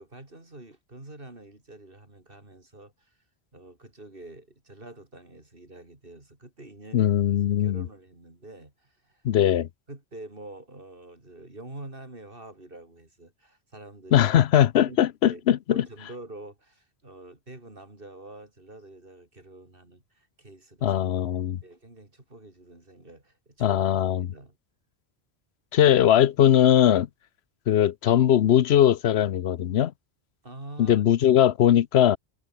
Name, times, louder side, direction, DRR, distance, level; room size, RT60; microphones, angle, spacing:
voice 1, 0.0-3.1 3.5-7.1 7.5-9.2 9.9-14.3 14.8-15.0 15.3-15.4 15.7-21.0 21.6-23.8 24.0-24.6 30.4-31.0, right 2 dB, 55° right, 4.7 m, -46 dB
voice 2, 6.9-7.9 9.2-9.7 14.1-15.8 20.8-21.6 23.6-24.3 25.7-27.1 27.7-29.9 30.8-32.2, left 10 dB, 75° left, 0.9 m, -20 dB
omnidirectional pair, 1.1 m